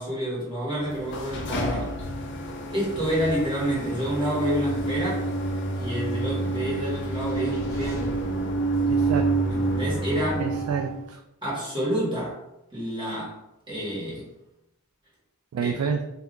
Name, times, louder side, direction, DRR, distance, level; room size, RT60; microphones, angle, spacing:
voice 1, 0.0-2.0 2.7-5.3 5.8-8.2 9.5-10.5 11.4-12.4 12.7-13.4 13.7-14.3 15.6-15.7, right 1 dB, 20° right, -8 dB, 1.4 m, -29 dB
sound 1, 0.8-11.1, right 2 dB, 55° left, 0.5 m, -28 dB
sound 2, 6.4-9.7, equal, 15° left, 0.9 m, -43 dB
voice 2, 8.9-9.7 10.4-11.2 15.5-16.0, right 6 dB, 75° right, 5 dB, 0.3 m, -29 dB
2.7 x 2.4 x 3.5 m, 0.87 s
head